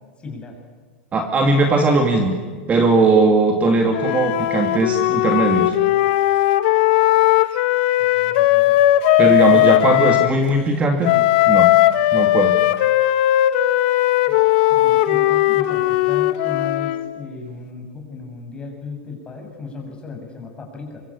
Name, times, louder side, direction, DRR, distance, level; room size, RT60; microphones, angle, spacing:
voice 1, 0.2-0.6 8.0-8.8 9.5-11.3 14.3-14.4 14.7-21.0, left 4 dB, 15° left, 2 dB, 7.3 m, -35 dB
voice 2, 1.1-2.4 2.7-5.7 9.2-11.1 11.5-11.7 12.1-12.5, right 3 dB, 20° right, 3 dB, 2.7 m, -18 dB
Wind instrument woodwind instrument, 3.9-10.3 11.0-17.1, left 15 dB, 60° left, 1.5 m, -17 dB
25.5 x 24.0 x 8.7 m, 1.5 s
supercardioid pair, 135°, 6 cm